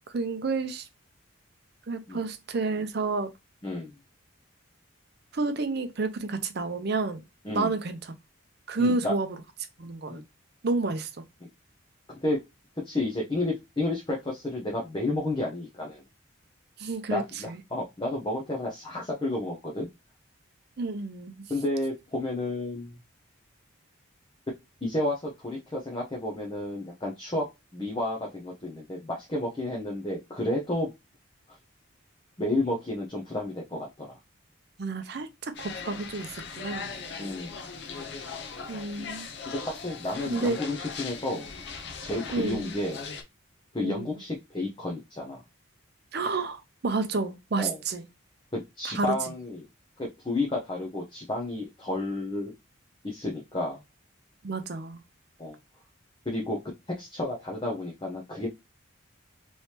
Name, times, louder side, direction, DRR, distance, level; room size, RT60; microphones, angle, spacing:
voice 1, 0.1-0.9 1.9-3.3 5.3-7.2 7.5-8.1 8.7-9.3 9.8-10.2 10.6-11.1 16.8-17.6 20.8-21.5 34.8-36.9 38.7-39.3 40.3-40.6 42.3-42.7 43.8-44.2 46.1-48.0 48.8-49.2 54.4-55.0, right 3 dB, 50° right, 0.5 m, -30 dB
voice 2, 3.6-4.0 7.4-7.7 8.8-9.1 10.1-10.2 12.1-12.4 12.8-16.0 17.1-19.9 21.5-22.9 24.8-27.5 27.7-30.9 32.4-34.2 37.2-37.6 39.5-41.5 42.0-43.0 43.7-45.4 47.6-47.8 48.5-49.7 50.0-52.5 53.0-53.8 55.4-55.6 56.3-56.6 57.0-58.5, left 2 dB, 25° left, 0.7 m, -31 dB
sound 1, 35.5-43.2, left 5 dB, 55° left, 0.7 m, -39 dB
3.3 x 3.1 x 2.8 m
head